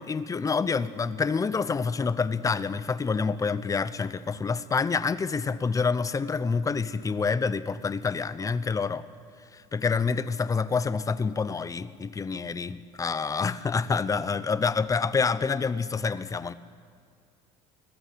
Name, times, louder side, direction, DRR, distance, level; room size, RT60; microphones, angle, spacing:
voice 1, 0.0-9.1 9.5-16.5, left 5 dB, 25° left, 0.9 m, -27 dB
21.0 x 14.0 x 9.8 m
supercardioid pair, 100°, 15 cm